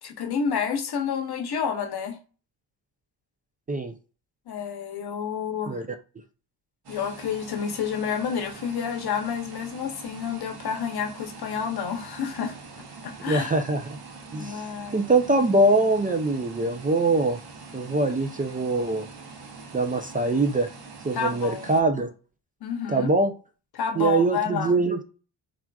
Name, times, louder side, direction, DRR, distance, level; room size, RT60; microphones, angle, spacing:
voice 1, 0.0-2.2 4.5-5.8 6.9-12.6 13.0-13.5 14.3-15.1 21.1-21.7 22.6-23.1 23.7-24.8, left 7 dB, 55° left, 0.8 m, -29 dB
sound 1, 6.8-21.8, right 4 dB, 55° right, 0.8 m, -44 dB
voice 2, 13.3-13.8 14.3-14.6 14.9-17.4 17.7-19.1 19.7-20.7 21.0-22.1 22.9-23.3 24.0-25.0, right 2 dB, 20° right, 0.4 m, -23 dB
3.5 x 2.4 x 2.2 m
cardioid pair, 70°, 47 cm